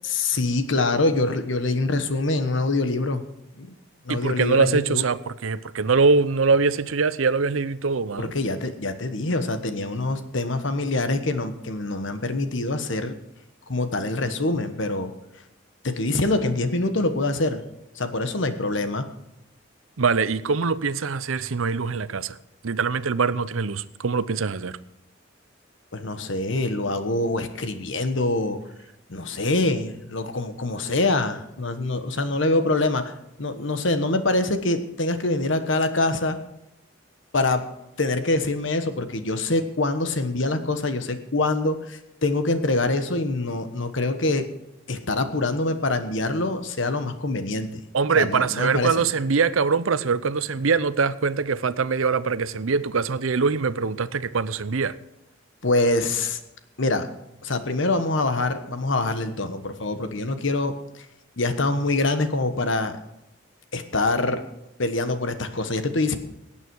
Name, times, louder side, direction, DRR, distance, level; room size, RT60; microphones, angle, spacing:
voice 1, 0.1-3.2 3.6-3.7 4.1-5.0 8.2-13.1 13.7-15.1 15.8-17.6 17.9-19.1 25.9-28.6 29.1-33.1 33.4-36.4 37.3-37.6 38.0-44.5 44.9-47.8 48.1-49.0 55.6-56.4 56.8-57.1 57.4-60.8 61.4-63.0 63.7-64.4 64.8-66.2, left 2 dB, 70° left, 9 dB, 1.3 m, -25 dB
voice 2, 4.1-8.3 20.0-22.4 22.6-24.8 47.9-54.9, right 4 dB, 85° right, 15 dB, 0.7 m, -23 dB
17.5 x 9.0 x 4.7 m, 0.88 s
head